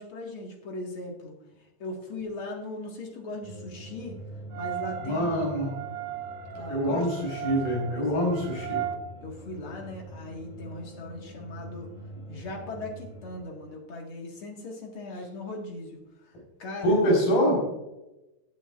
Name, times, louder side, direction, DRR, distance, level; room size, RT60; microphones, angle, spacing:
voice 1, 0.0-1.3 1.8-4.2 4.6-5.4 6.5-7.2 7.9-8.3 9.2-11.9 12.3-16.0 16.3-16.4 16.6-17.0, left 2 dB, 45° left, 0 dB, 2.1 m, -39 dB
sound 1, 3.4-13.4, right 1 dB, ahead, 2.3 m, -45 dB
sound 2, 4.5-9.0, right 9 dB, 70° right, 1.7 m, -36 dB
voice 2, 5.0-5.7 6.7-8.8 16.8-17.6, equal, 70° left, -2 dB, 6.3 m, -25 dB
18.0 x 8.4 x 2.5 m, 0.96 s
omnidirectional pair, 4.1 m